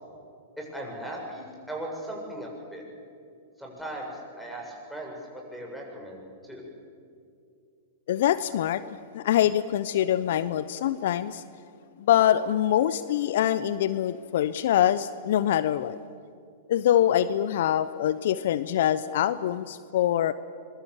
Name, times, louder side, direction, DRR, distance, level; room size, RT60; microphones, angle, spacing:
voice 1, 0.6-2.8 3.6-6.6, right 1 dB, ahead, 0 dB, 7.4 m, -38 dB
voice 2, 8.1-8.8 9.1-11.4 12.0-16.0 16.7-20.3, left 11 dB, 65° left, 16 dB, 0.7 m, -24 dB
25.0 x 22.5 x 7.3 m, 2.4 s
hypercardioid pair, 110°, 0 cm